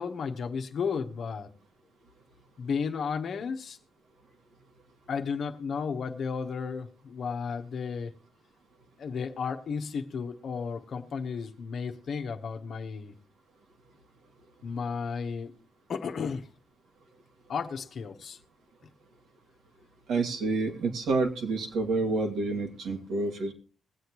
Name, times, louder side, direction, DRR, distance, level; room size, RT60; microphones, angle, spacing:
voice 1, 0.0-1.5 2.6-3.8 5.1-8.1 9.0-13.1 14.6-15.5 15.9-16.5 17.5-18.4, left 5 dB, 55° left, 1.1 m, -33 dB
voice 2, 20.1-23.5, right 3 dB, 70° right, 2.3 m, -28 dB
21.5 x 7.9 x 3.0 m
cardioid pair, 90°, 0 cm